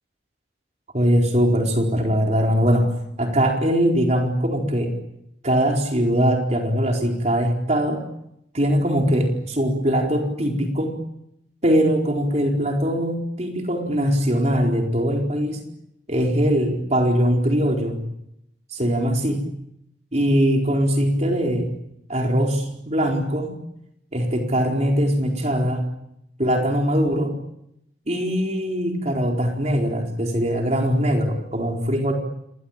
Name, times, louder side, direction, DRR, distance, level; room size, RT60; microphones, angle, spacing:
voice 1, 0.9-2.9 3.2-4.9 5.4-8.0 8.5-11.0 11.6-15.6 16.1-18.0 18.7-19.4 20.1-21.7 22.1-23.6 24.1-25.9 26.4-27.4 28.1-32.1, equal, 40° right, 1 dB, 4.4 m, -21 dB
27.5 x 23.5 x 8.9 m, 0.81 s
head